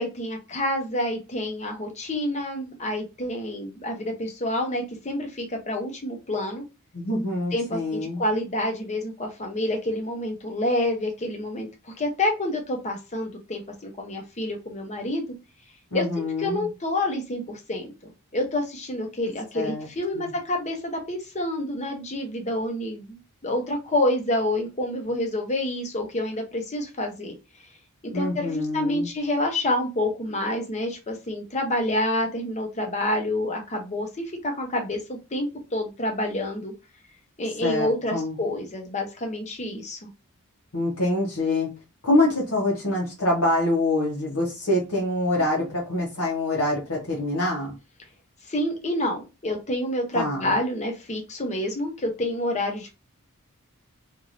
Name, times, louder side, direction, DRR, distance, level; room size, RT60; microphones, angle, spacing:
voice 1, 0.0-6.6 7.5-11.7 12.0-15.2 15.9-27.3 28.1-36.7 37.4-40.1 48.5-52.9, left 1 dB, 30° left, 3 dB, 0.8 m, -28 dB
voice 2, 6.9-8.2 15.9-16.7 19.5-19.9 20.1-20.3 28.1-29.1 37.6-38.4 40.7-41.7 42.0-47.7 50.1-50.5, left 1 dB, 75° left, -4 dB, 1.1 m, -25 dB
3.1 x 2.6 x 2.6 m, 0.27 s
head